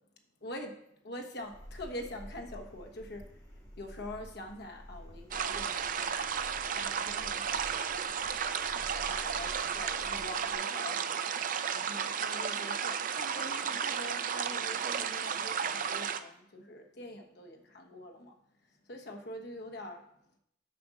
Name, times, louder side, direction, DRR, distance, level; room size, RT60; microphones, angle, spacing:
voice 1, 0.4-3.4 3.8-8.0 8.7-11.2 11.7-18.3 18.9-20.0, left 1 dB, 60° left, 3 dB, 1.2 m, -44 dB
sound 1, 1.4-10.6, equal, 20° left, 2.8 m, -50 dB
sound 2, 5.3-16.2, right 7 dB, 45° right, 0.4 m, -33 dB
6.8 x 5.2 x 6.4 m, 0.75 s
head